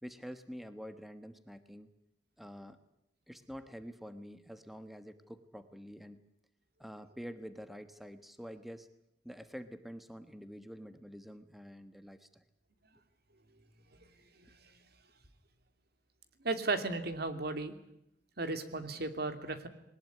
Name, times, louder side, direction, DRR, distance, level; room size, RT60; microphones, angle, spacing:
voice 1, 0.0-1.9 2.4-2.8 3.3-6.2 6.8-8.9 9.2-12.4, equal, ahead, 10 dB, 1.3 m, -47 dB
voice 2, 14.4-14.7 16.4-17.7 18.4-19.7, right 3 dB, 60° right, 9 dB, 2.7 m, -35 dB
21.0 x 20.0 x 9.5 m, 0.79 s
head